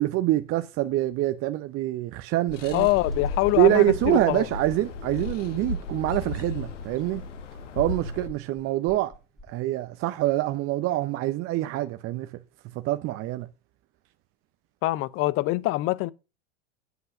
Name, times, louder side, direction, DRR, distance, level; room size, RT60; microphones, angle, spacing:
voice 1, 0.0-2.9 3.6-7.2 7.8-9.1 9.5-12.3 12.8-13.5, right 15 dB, 35° right, 0.8 m, -25 dB
sound 1, 2.5-8.3, left 3 dB, 75° left, 1.7 m, -35 dB
sound 2, 2.5-3.7 4.6-5.9 6.5-7.2 8.0-9.6, left 1 dB, ahead, 1.5 m, -47 dB
voice 2, 2.7-4.5 14.8-16.1, left 19 dB, 35° left, 0.6 m, -24 dB
8.0 x 7.8 x 6.4 m
hypercardioid pair, 95°, 37 cm